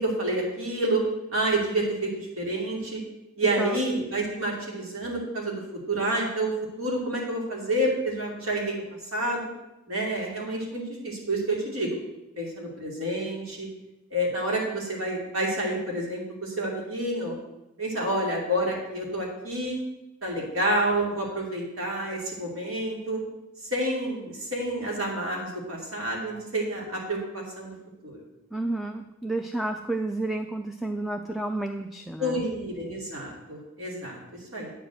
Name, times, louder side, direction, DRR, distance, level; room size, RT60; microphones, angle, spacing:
voice 1, 0.0-1.0 1.3-3.0 3.4-5.6 5.9-6.5 6.8-8.8 9.1-9.5 9.9-12.0 12.4-13.7 14.1-17.4 17.8-19.8 20.2-23.2 23.7-27.7 28.0-28.2 32.2-34.2 34.5-34.7, right 1 dB, 75° right, -2 dB, 2.8 m, -29 dB
voice 2, 28.5-32.4, right 2 dB, ahead, 6 dB, 0.3 m, -31 dB
8.9 x 5.1 x 7.7 m, 0.97 s
head